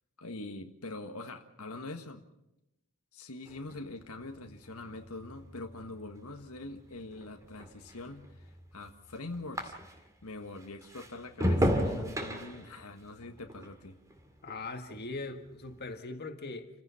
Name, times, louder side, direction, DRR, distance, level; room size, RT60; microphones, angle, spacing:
voice 1, 0.2-2.2 3.1-8.5 8.7-10.0 10.2-14.0, left 2 dB, 80° left, 5 dB, 1.6 m, -44 dB
sound 1, 3.5-10.2 10.6-15.1 15.4-15.9, equal, 15° right, 2.2 m, -36 dB
voice 2, 14.4-16.7, left 3 dB, 45° left, 5 dB, 1.9 m, -40 dB
29.5 x 16.0 x 5.8 m, 0.89 s
head